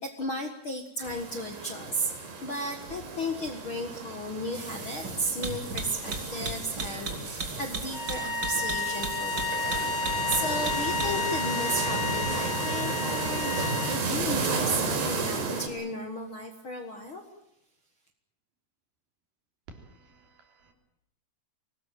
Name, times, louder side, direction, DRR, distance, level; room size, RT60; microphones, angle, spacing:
voice 1, 0.0-2.1 2.4-9.9 10.3-17.2, equal, 45° left, 5 dB, 1.7 m, -34 dB
sound 1, 1.0-15.7, right 4 dB, 90° right, 6.3 m, -34 dB
sound 2, 4.5-15.4, right 3 dB, 30° right, 3.0 m, -38 dB
sound 3, 7.9-14.0, left 4 dB, 65° left, 7.5 m, -31 dB
voice 2, 19.7-20.7, right 3 dB, 65° right, 3 dB, 5.2 m, -52 dB
23.5 x 19.5 x 9.1 m, 0.80 s
omnidirectional pair, 4.6 m